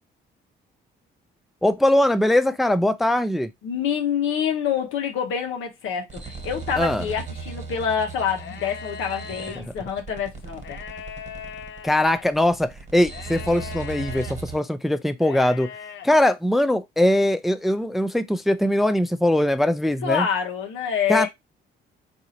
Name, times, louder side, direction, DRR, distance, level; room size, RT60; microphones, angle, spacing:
voice 1, 1.6-3.5 6.8-7.0 11.8-15.7 16.0-20.3 21.1-21.3, left 1 dB, ahead, 0.3 m, -21 dB
voice 2, 3.6-10.8 20.0-21.3, left 8 dB, 90° left, 1.0 m, -26 dB
sound 1, 6.1-14.6, right 4 dB, 35° right, 1.2 m, -38 dB
sound 2, 8.3-9.6 10.6-12.2 13.1-14.4 15.2-16.1, left 8 dB, 65° left, 0.6 m, -39 dB
3.8 x 2.7 x 2.8 m
cardioid pair, 90°, 20 cm